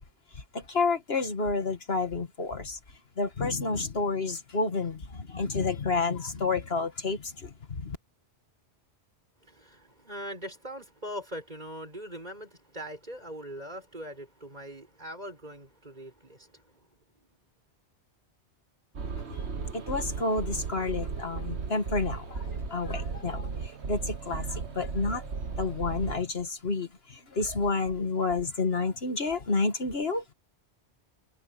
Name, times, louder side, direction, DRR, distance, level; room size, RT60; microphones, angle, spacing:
voice 1, 0.5-2.8 3.2-8.0 19.3-19.4 19.7-23.5 23.9-25.2 25.6-30.3, left 3 dB, 60° left, 2.0 m, -30 dB
voice 2, 9.4-16.8 17.2-17.3, equal, 40° right, 7.2 m, -41 dB
sound 1, 18.9-26.2, right 5 dB, 75° right, 1.6 m, -35 dB
omnidirectional pair, 1.1 m